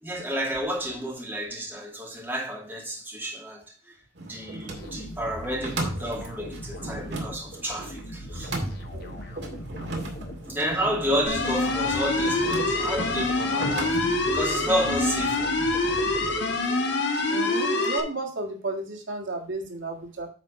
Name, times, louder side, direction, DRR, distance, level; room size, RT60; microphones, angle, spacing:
voice 1, 0.0-3.9 4.2-8.5 9.1-9.2 10.5-15.5, equal, 10° right, 2.3 m, -31 dB
sound 1, 4.2-14.4, right 2 dB, 65° right, 2.2 m, -37 dB
sound 2, 4.7-16.9, equal, 55° left, 1.4 m, -40 dB
sound 3, 11.3-18.0, left 2 dB, 70° left, 1.6 m, -25 dB
voice 2, 17.3-20.3, right 2 dB, 85° right, 2.0 m, -33 dB
9.4 x 4.4 x 4.9 m
head